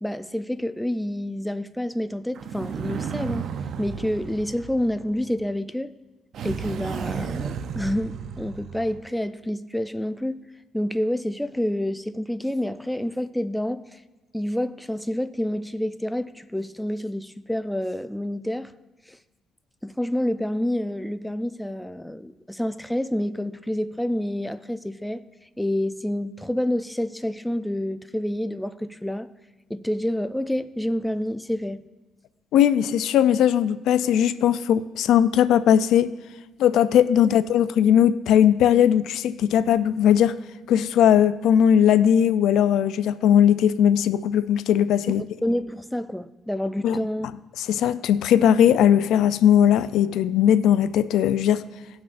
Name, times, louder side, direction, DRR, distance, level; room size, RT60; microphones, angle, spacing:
voice 1, 0.0-3.5 3.8-5.9 6.4-10.4 10.7-14.0 14.3-18.7 19.1-19.2 19.8-25.2 25.6-29.3 29.7-31.8 45.1-45.2 45.4-47.3, left 1 dB, 5° left, 0.4 m, -28 dB
sound 1, 2.3-5.4 6.3-9.1, right 7 dB, 65° right, 0.5 m, -33 dB
voice 2, 32.5-36.1 36.6-40.3 40.7-45.2 46.8-47.0 47.6-51.6, left 9 dB, 85° left, 0.4 m, -19 dB
18.5 x 6.1 x 2.5 m
cardioid pair, 90°, 0 cm